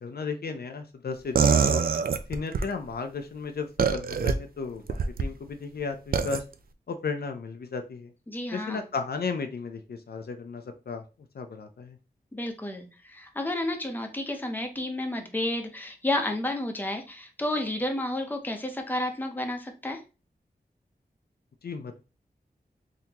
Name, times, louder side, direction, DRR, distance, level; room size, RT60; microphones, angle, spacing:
voice 1, 0.0-1.8 2.3-6.4 6.9-8.1 8.5-11.0 11.3-12.0 21.6-22.0, left 4 dB, 70° left, 6 dB, 0.5 m, -34 dB
sound 1, 1.3-2.7 3.8-4.3 4.9-5.3 6.1-6.4, right 6 dB, 60° right, 0.4 m, -23 dB
voice 2, 8.3-8.9 12.3-20.0, left 1 dB, 10° left, 4 dB, 0.7 m, -31 dB
3.5 x 2.8 x 2.8 m, 0.31 s
wide cardioid pair, 85°, 17 cm